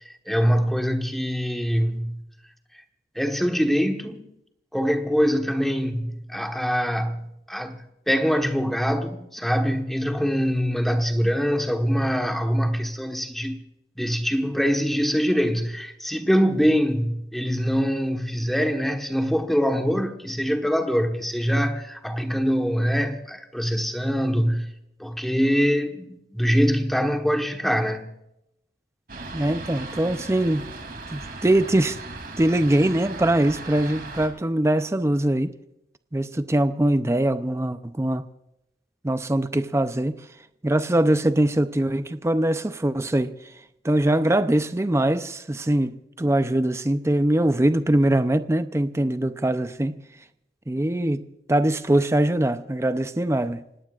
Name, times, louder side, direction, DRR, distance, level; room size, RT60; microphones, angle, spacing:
voice 1, 0.0-2.2 3.1-4.2 4.7-13.6 14.0-24.7 25.0-28.1, equal, ahead, 1.2 m, -24 dB
Fixed-wing aircraft airplane, 29.1-34.3, right 2 dB, 55° right, 3.0 m, -37 dB
voice 2, 29.3-30.7 31.1-32.0 32.4-35.5 36.1-38.2 39.0-40.2 40.6-43.3 43.8-50.0 50.7-53.6, right 1 dB, 15° right, 0.5 m, -22 dB
28.0 x 18.0 x 2.4 m
head